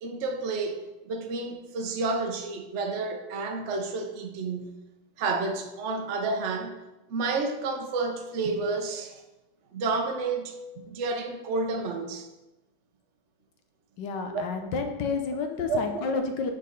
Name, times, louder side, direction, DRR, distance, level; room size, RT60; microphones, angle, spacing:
voice 1, 0.0-4.8 5.2-6.8 7.1-9.2 9.7-12.3 14.3-14.7 15.7-15.8, right 3 dB, 50° right, 4 dB, 0.8 m, -30 dB
voice 2, 14.0-16.5, left 4 dB, 65° left, 5 dB, 1.4 m, -30 dB
6.3 x 5.4 x 5.2 m, 1.0 s
omnidirectional pair, 2.2 m